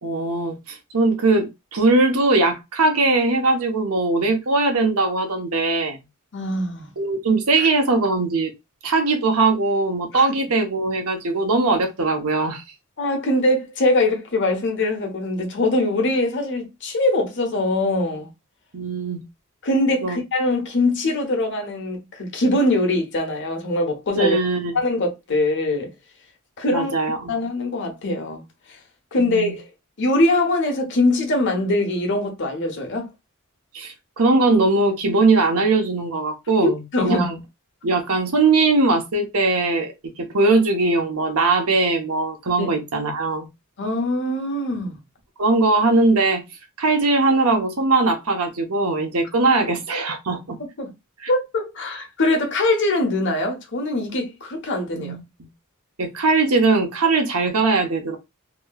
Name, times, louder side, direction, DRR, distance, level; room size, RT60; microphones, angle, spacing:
voice 1, 0.0-6.0 7.0-8.5 8.8-12.6 18.7-19.2 20.0-20.2 24.1-24.8 26.7-27.3 29.2-29.5 33.7-37.4 37.8-43.5 45.4-46.4 46.8-50.6 51.2-51.3 54.9-55.5 56.0-58.2, right 3 dB, 75° right, 1.0 m, -20 dB
voice 2, 6.3-6.9 7.6-7.7 10.1-10.2 13.0-18.3 19.6-24.4 24.7-25.9 26.6-26.9 27.3-28.4 28.7-28.8 29.1-29.7 30.0-33.1 36.6-37.3 42.6-42.7 43.8-45.0 50.8-50.9 51.3-55.2, left 2 dB, 55° left, 1.0 m, -22 dB
3.0 x 2.8 x 2.3 m
head